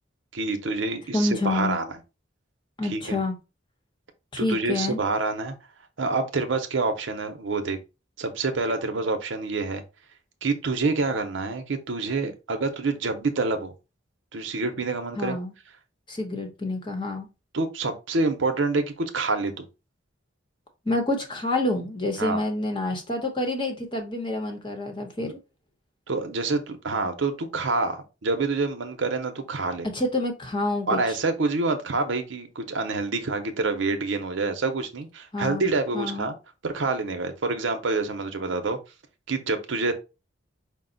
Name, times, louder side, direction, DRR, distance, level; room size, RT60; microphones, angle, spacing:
voice 1, 0.3-1.9 2.9-3.2 4.4-5.5 6.0-7.8 8.2-9.8 10.4-13.7 14.3-15.4 17.5-19.7 22.2-22.4 25.2-25.3 26.1-29.9 30.9-36.3 36.6-38.8 39.3-39.9, right 3 dB, 75° right, 0.7 m, -27 dB
voice 2, 1.1-1.8 2.8-3.3 4.3-5.0 15.2-15.5 16.1-17.3 20.8-25.4 29.9-31.0 35.3-35.7 35.9-36.3, left 2 dB, 25° left, 0.8 m, -28 dB
5.2 x 2.1 x 3.8 m
head